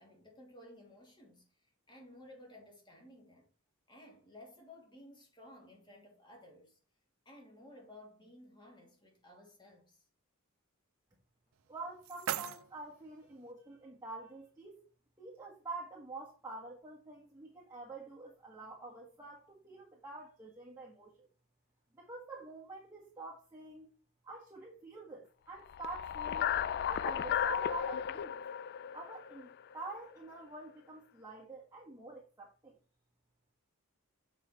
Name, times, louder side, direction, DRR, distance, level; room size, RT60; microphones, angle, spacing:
voice 1, 0.0-3.5 3.9-6.8 7.2-10.0, left 1 dB, 20° left, 2.8 m, -56 dB
sound 1, 11.5-13.5, right 10 dB, 70° right, 0.5 m, -42 dB
voice 2, 11.7-14.9 15.2-21.3 22.0-23.9 24.2-26.5 26.9-28.5 28.9-32.8, right 3 dB, 15° right, 1.5 m, -47 dB
sound 2, 25.7-29.9, left 9 dB, 50° left, 0.3 m, -35 dB
7.4 x 5.0 x 4.6 m
head